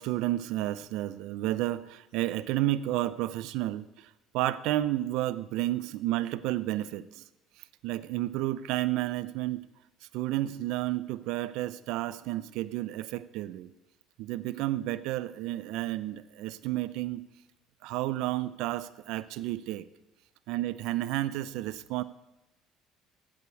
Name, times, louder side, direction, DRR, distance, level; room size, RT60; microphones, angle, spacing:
voice 1, 0.0-7.2 7.6-9.6 10.1-13.7 14.2-17.2 17.8-19.9 20.5-22.0, right 15 dB, 75° right, 16 dB, 0.5 m, -31 dB
11.5 x 8.5 x 8.1 m, 0.97 s
cardioid pair, 115°, 0 cm